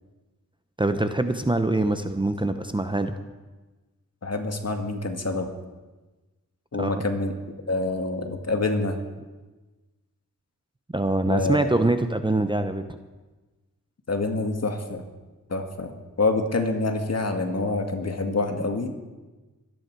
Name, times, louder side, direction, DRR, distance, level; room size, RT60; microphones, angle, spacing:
voice 1, 0.8-3.1 6.8-7.0 10.9-13.0, right 2 dB, 15° right, 8 dB, 0.8 m, -24 dB
voice 2, 4.2-5.5 6.7-7.3 7.7-9.0 11.3-11.6 14.1-15.0 15.5-15.9 16.2-18.9, left 3 dB, 50° left, 5 dB, 1.9 m, -26 dB
23.0 x 9.5 x 4.7 m, 1.2 s
cardioid pair, 65°, 34 cm